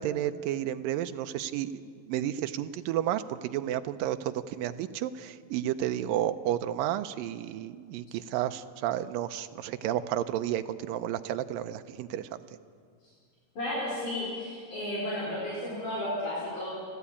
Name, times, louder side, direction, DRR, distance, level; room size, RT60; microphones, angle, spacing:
voice 1, 0.0-12.4, right 12 dB, 80° right, 10 dB, 2.3 m, -32 dB
voice 2, 13.6-16.7, left 1 dB, 60° left, -6 dB, 5.9 m, -33 dB
29.0 x 12.0 x 8.5 m, 2.1 s
omnidirectional pair, 4.2 m